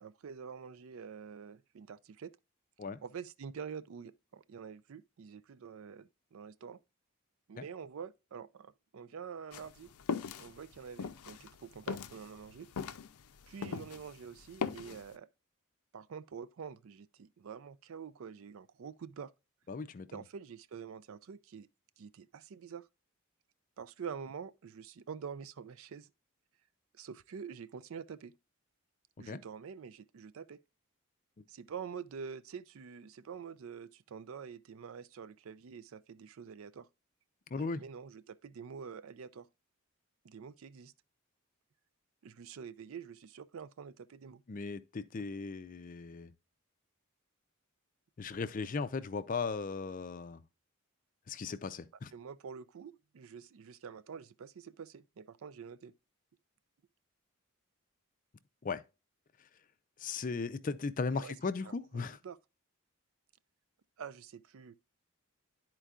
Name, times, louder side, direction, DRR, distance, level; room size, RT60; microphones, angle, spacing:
voice 1, 0.0-2.3 3.0-6.8 7.5-9.9 10.4-12.7 13.5-15.3 15.9-19.3 20.1-21.7 22.0-22.9 23.8-26.1 26.9-28.3 29.2-30.6 31.5-36.9 37.6-39.5 40.2-40.9 42.2-44.4 52.1-55.9 61.1-61.3 61.6-62.4 64.0-64.7, right 6 dB, 70° right, 0.4 m, -47 dB
sound 1, 9.5-14.1 14.4-15.0, left 5 dB, 90° left, 0.5 m, -39 dB
voice 2, 19.7-20.2 29.3-29.4 37.5-37.8 44.5-46.3 48.2-50.4 51.3-52.1 58.6-58.8 60.0-62.2, left 4 dB, 35° left, 0.4 m, -37 dB
11.5 x 4.5 x 2.4 m
head